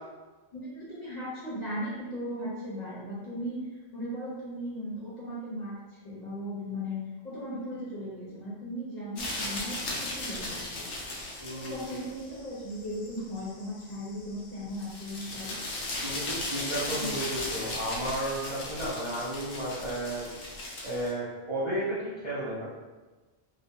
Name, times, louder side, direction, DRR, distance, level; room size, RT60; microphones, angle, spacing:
voice 1, 0.5-10.8 11.5-15.6 16.8-17.1, equal, 45° left, -7 dB, 0.7 m, -37 dB
sound 1, 9.2-21.1, left 2 dB, 85° left, 0.9 m, -37 dB
voice 2, 11.4-11.9 16.0-20.3 20.8-22.6, right 1 dB, 40° right, -11 dB, 0.4 m, -33 dB
2.5 x 2.1 x 2.6 m, 1.2 s
omnidirectional pair, 1.1 m